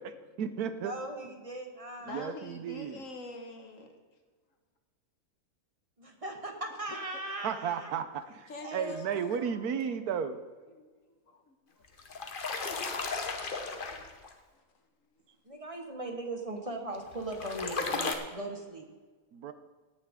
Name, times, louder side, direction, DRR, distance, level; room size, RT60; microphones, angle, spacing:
voice 1, 0.0-0.9 2.0-3.0 7.4-10.4 19.3-19.5, right 7 dB, 80° right, 11 dB, 1.3 m, -34 dB
voice 2, 0.8-2.2 6.0-7.9 8.6-9.7 15.4-18.9, right 2 dB, 25° right, 3 dB, 1.3 m, -39 dB
voice 3, 2.0-3.9 6.9-7.2 8.2-9.6 10.7-11.8 12.9-13.1 14.5-14.6 15.6-15.7 19.5-19.6, left 2 dB, 60° left, 5 dB, 1.7 m, -47 dB
sound 1, 11.8-14.3 16.9-18.2, left 4 dB, 40° left, 1.1 m, -35 dB
17.0 x 9.3 x 3.7 m, 1.4 s
omnidirectional pair, 1.6 m